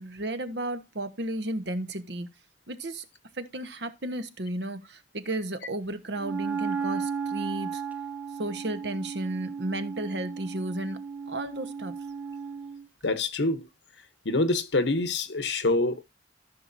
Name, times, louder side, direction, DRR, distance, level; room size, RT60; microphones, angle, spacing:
voice 1, 0.0-2.3 2.7-3.0 3.4-7.8 8.4-11.0 11.3-11.9, right 1 dB, 70° right, 1.2 m, -33 dB
Wind instrument woodwind instrument, 6.2-12.8, right 5 dB, 10° right, 0.7 m, -35 dB
voice 2, 13.0-13.6 14.2-16.0, left 2 dB, 75° left, 1.1 m, -26 dB
14.5 x 5.8 x 2.7 m
head